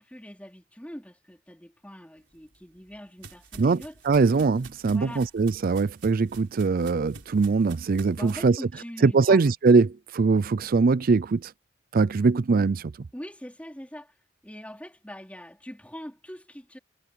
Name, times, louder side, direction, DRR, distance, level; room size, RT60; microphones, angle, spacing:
voice 1, 0.0-4.0 4.8-5.3 8.2-9.4 13.1-14.2 14.4-16.8, equal, 5° left, 4.6 m, -42 dB
sound 1, 2.3-8.4, right 4 dB, 85° right, 3.9 m, -49 dB
voice 2, 3.6-8.6 9.0-11.5 11.9-12.9, right 4 dB, 50° right, 0.4 m, -22 dB
head